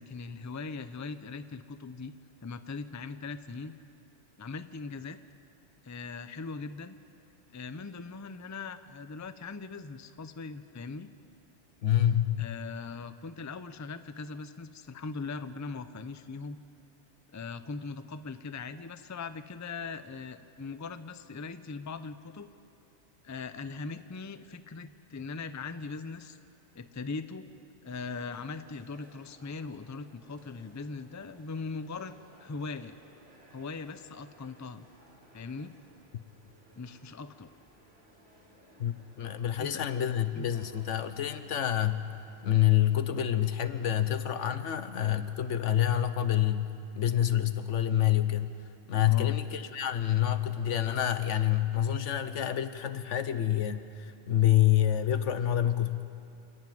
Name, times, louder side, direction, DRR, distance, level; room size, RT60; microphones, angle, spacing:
voice 1, 0.0-2.1 2.4-3.7 4.4-5.2 5.8-7.0 7.5-11.1 12.4-16.6 17.3-22.5 23.2-26.4 26.7-27.4 27.8-32.1 32.4-33.0 33.5-34.9 35.3-35.7 36.7-37.5 39.6-39.8 40.3-40.5 49.1-49.4, left 4 dB, 20° left, 11 dB, 0.5 m, -40 dB
voice 2, 11.8-12.5 38.8-42.0 42.4-46.7 46.9-48.6 48.9-56.0, left 11 dB, 85° left, 11 dB, 1.2 m, -27 dB
sound 1, 27.8-42.4, equal, 85° right, 3.4 m, -60 dB
29.0 x 11.0 x 9.4 m, 2.7 s
omnidirectional pair, 1.2 m